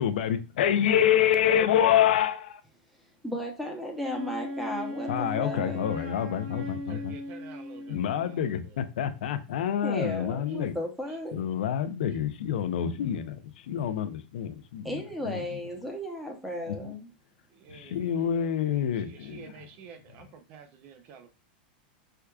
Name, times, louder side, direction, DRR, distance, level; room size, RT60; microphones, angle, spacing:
voice 1, 0.0-2.6 5.1-7.2 7.9-10.7 11.3-13.4 13.7-14.9 15.2-15.4 16.7-16.8 17.7-19.5, left 10 dB, 80° left, 0.4 m, -27 dB
voice 2, 3.2-5.8 9.8-11.4 14.8-17.1, equal, ahead, 0.7 m, -35 dB
Wind instrument woodwind instrument, 3.9-8.3, left 1 dB, 70° right, 1.6 m, -37 dB
voice 3, 6.7-8.8 10.5-10.7 11.1-11.2 12.1-12.2 17.5-21.3, right 6 dB, 35° right, 0.4 m, -50 dB
4.4 x 2.4 x 2.2 m
supercardioid pair, 160°, 5 cm